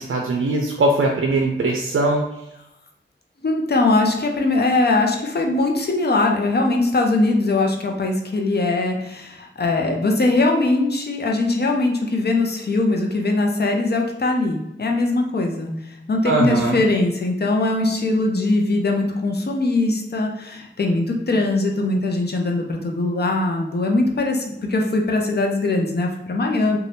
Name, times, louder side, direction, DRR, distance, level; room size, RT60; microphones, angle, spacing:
voice 1, 0.0-2.2 16.2-16.8, right 2 dB, 75° right, 1 dB, 0.4 m, -20 dB
voice 2, 3.4-26.8, left 2 dB, 50° left, 2 dB, 0.6 m, -21 dB
2.6 x 2.3 x 3.3 m, 0.86 s
cardioid pair, 50°, 21 cm